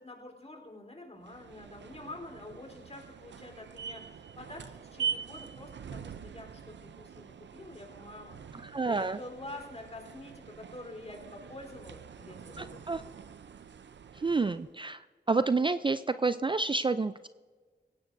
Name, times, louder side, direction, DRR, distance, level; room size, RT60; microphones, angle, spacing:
voice 1, 0.0-12.9, left 2 dB, 35° left, 2 dB, 3.8 m, -47 dB
sound 1, 1.2-14.7, right 7 dB, 80° right, 0.5 m, -43 dB
voice 2, 8.7-9.2 12.9-13.0 14.2-15.0 15.3-17.3, right 3 dB, 25° right, 12 dB, 0.4 m, -28 dB
17.5 x 16.5 x 2.6 m, 1.4 s
cardioid pair, 50°, 18 cm